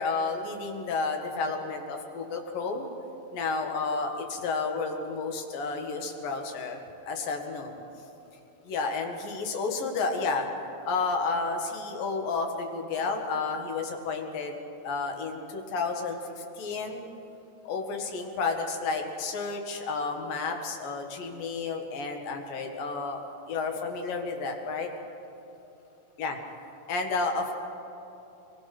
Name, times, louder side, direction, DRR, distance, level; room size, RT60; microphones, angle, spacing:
voice 1, 0.0-2.9 3.3-6.8 7.1-7.8 8.7-10.5 10.8-14.5 14.8-17.1 17.7-23.2 23.5-24.9 26.2-26.4 26.9-27.6, left 4 dB, 80° left, 3 dB, 3.6 m, -31 dB
24.5 x 21.5 x 6.1 m, 3.0 s
omnidirectional pair, 4.0 m